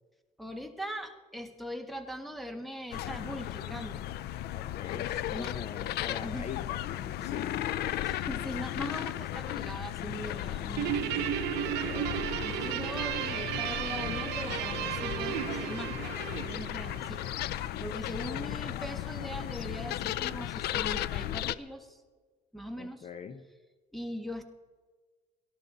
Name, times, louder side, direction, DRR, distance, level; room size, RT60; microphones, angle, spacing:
voice 1, 0.4-4.1 5.3-5.6 6.1-6.5 8.0-11.0 12.4-22.0 22.5-23.1 23.9-24.4, equal, ahead, 6 dB, 1.5 m, -41 dB
sound 1, 2.9-21.6, left 13 dB, 75° left, 0.5 m, -35 dB
voice 2, 4.5-7.6 11.7-12.2 22.8-23.4, left 6 dB, 40° left, 9 dB, 0.8 m, -43 dB
Guitar, 10.8-17.4, right 12 dB, 80° right, 0.8 m, -34 dB
18.0 x 12.0 x 4.0 m, 1.4 s
cardioid pair, 110°, 17 cm